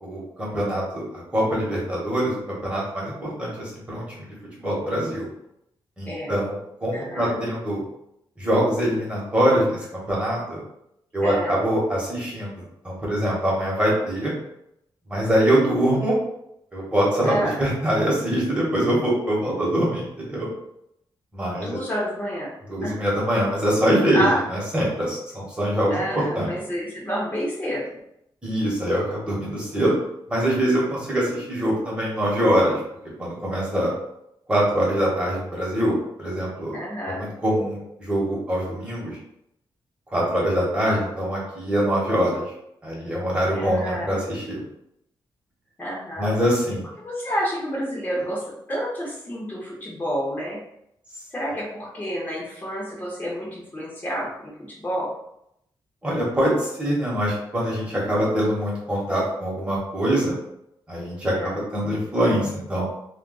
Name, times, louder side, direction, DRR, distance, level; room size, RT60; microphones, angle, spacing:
voice 1, 0.0-1.0 1.3-5.3 6.0-7.8 8.4-10.6 11.1-14.3 15.1-16.2 16.7-17.3 17.6-20.5 21.3-21.8 22.7-26.5 28.4-29.9 30.3-32.8 33.2-33.9 34.5-36.8 37.1-39.2 40.1-42.4 42.8-44.6 46.2-46.8 56.0-60.3 60.9-62.8, equal, 10° right, -5 dB, 1.1 m, -24 dB
voice 2, 6.9-7.4 11.2-11.6 17.2-17.6 21.5-22.5 22.8-22.9 24.1-24.4 25.9-28.0 36.7-37.3 43.5-44.2 45.8-46.3 47.0-50.6 51.3-54.5 54.8-55.1 61.3-61.5, equal, 20° left, -7 dB, 0.8 m, -29 dB
2.3 x 2.2 x 3.8 m, 0.78 s
wide cardioid pair, 125°, 9 cm